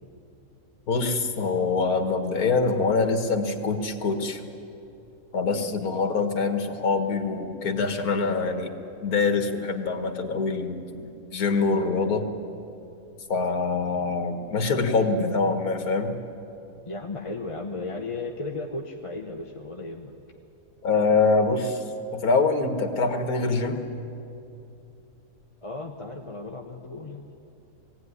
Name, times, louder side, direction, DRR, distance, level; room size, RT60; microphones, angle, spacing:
voice 1, 0.9-4.4 5.3-8.8 9.0-10.9 11.3-12.3 13.3-16.2 20.8-21.8 22.1-23.8, left 4 dB, 80° left, 6 dB, 2.0 m, -24 dB
voice 2, 16.8-20.1 25.6-27.2, left 3 dB, 25° left, 2 dB, 1.0 m, -35 dB
20.5 x 16.5 x 9.7 m, 2.8 s
omnidirectional pair, 1.5 m